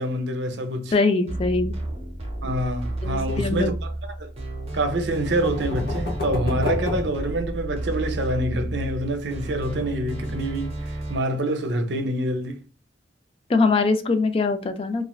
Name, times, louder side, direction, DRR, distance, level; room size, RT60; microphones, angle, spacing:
voice 1, 0.0-0.9 2.4-3.9 4.2-4.3 4.7-12.6, right 1 dB, 70° right, 0.6 m, -26 dB
voice 2, 0.9-1.8 3.0-3.7 13.5-15.0, left 3 dB, 30° left, 0.3 m, -22 dB
sound 1, 1.3-11.2, right 1 dB, 35° right, 0.7 m, -32 dB
sound 2, 5.1-8.0, left 2 dB, 55° left, 0.8 m, -31 dB
3.2 x 2.4 x 2.2 m
head